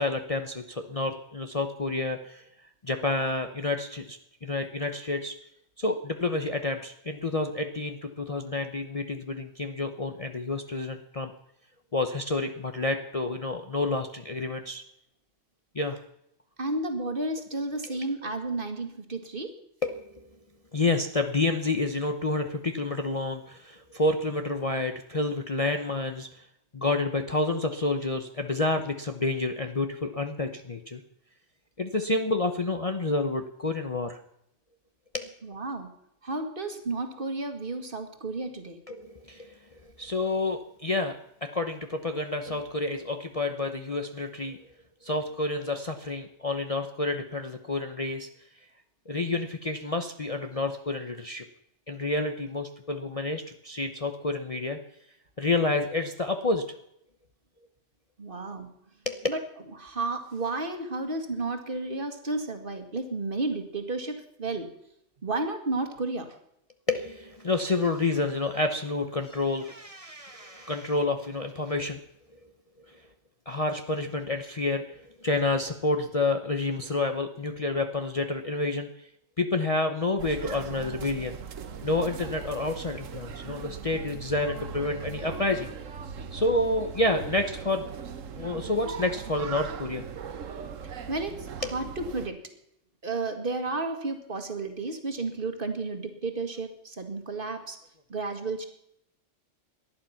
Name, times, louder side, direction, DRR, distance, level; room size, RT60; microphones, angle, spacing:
voice 1, 0.0-5.4 5.8-11.3 11.9-14.8 15.7-16.0 17.9-18.0 19.8-20.3 20.7-26.5 26.7-31.0 31.8-34.2 35.1-35.3 38.9-44.6 45.0-48.3 49.1-51.5 51.9-54.8 55.4-56.8 59.1-59.3 66.9-72.0 72.9-73.1 73.5-79.1 79.4-81.4 81.8-85.7 86.3-87.9 88.3-90.1 91.6-91.7, left 2 dB, 30° left, 6 dB, 0.9 m, -29 dB
voice 2, 16.6-19.5 35.4-35.9 36.2-38.8 58.2-58.7 59.3-59.4 59.8-64.7 65.2-66.4 91.1-92.4 93.0-97.8 98.1-98.7, right 3 dB, 45° right, 7 dB, 2.2 m, -32 dB
sound 1, 80.2-92.3, right 6 dB, 85° right, 1.4 m, -39 dB
18.5 x 12.0 x 5.8 m, 0.76 s
omnidirectional pair, 1.3 m